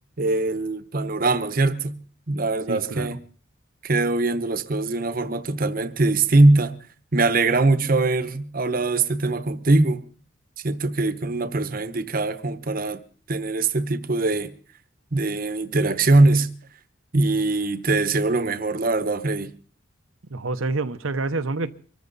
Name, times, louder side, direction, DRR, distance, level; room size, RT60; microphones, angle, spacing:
voice 1, 0.2-2.0 2.3-3.2 3.8-6.7 7.1-10.0 10.6-13.0 13.3-14.5 15.1-16.5 17.1-19.5, right 2 dB, 45° right, 1.0 m, -22 dB
voice 2, 2.7-3.2 20.3-21.7, right 3 dB, 85° right, 0.9 m, -27 dB
24.5 x 13.5 x 4.0 m
head